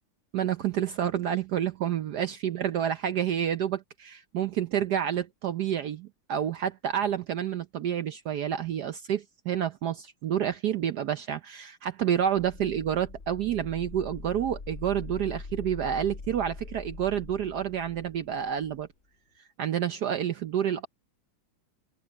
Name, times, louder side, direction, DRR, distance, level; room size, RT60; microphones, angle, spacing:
voice 1, 0.3-18.9 19.6-20.9, right 9 dB, 65° right, 1.0 m, -29 dB
sound 1, 12.2-18.9, left 3 dB, 35° left, 2.0 m, -43 dB
omnidirectional pair, 2.4 m